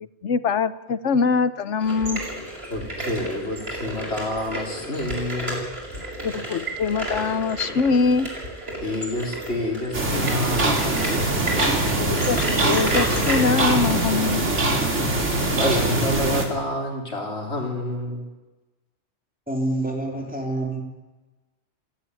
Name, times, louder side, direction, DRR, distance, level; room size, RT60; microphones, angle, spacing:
voice 1, 0.2-2.2 6.2-8.3 12.0-14.5, left 4 dB, 80° left, 14 dB, 1.3 m, -23 dB
sound 1, 1.8-13.3, right 1 dB, 60° right, 6.7 m, -31 dB
voice 2, 2.7-5.8 8.8-11.9 15.5-18.2, left 1 dB, 65° left, 0 dB, 4.4 m, -29 dB
sound 2, 9.9-16.5, right 2 dB, 85° right, 3.1 m, -22 dB
voice 3, 19.5-20.8, right 2 dB, 5° right, 0 dB, 3.7 m, -27 dB
29.0 x 11.0 x 9.8 m, 1.1 s
omnidirectional pair, 1.2 m